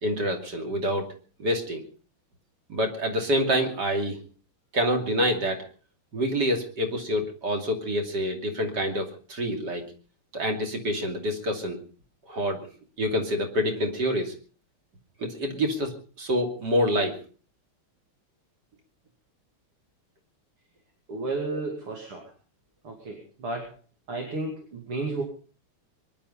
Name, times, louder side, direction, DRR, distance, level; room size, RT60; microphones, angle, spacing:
voice 1, 0.0-1.1 1.4-1.8 2.7-4.2 4.7-5.6 6.1-9.8 10.3-11.8 12.3-12.6 13.0-14.3 15.2-15.9 16.2-17.1 21.5-21.6, equal, 50° right, 4 dB, 3.4 m, -27 dB
voice 2, 21.1-22.2 22.8-23.7 24.1-25.2, right 3 dB, 85° right, 2 dB, 3.5 m, -32 dB
23.0 x 11.5 x 5.5 m, 0.40 s
omnidirectional pair, 2.4 m